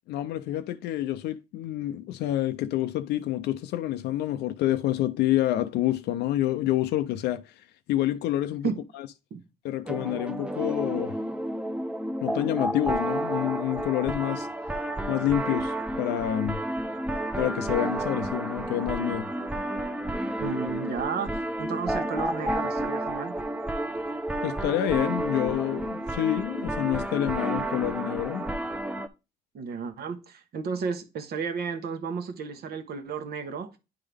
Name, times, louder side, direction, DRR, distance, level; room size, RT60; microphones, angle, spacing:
voice 1, 0.1-7.5 7.9-8.7 9.0-9.1 9.6-11.2 12.2-14.5 15.1-16.6 17.4-19.3 24.4-28.5, left 13 dB, 90° left, 0.4 m, -28 dB
sound 1, 9.9-29.1, right 1 dB, 5° right, 0.6 m, -31 dB
voice 2, 20.4-23.4 29.5-33.8, right 5 dB, 70° right, 1.1 m, -33 dB
9.5 x 3.6 x 3.4 m
cardioid pair, 90°, 17 cm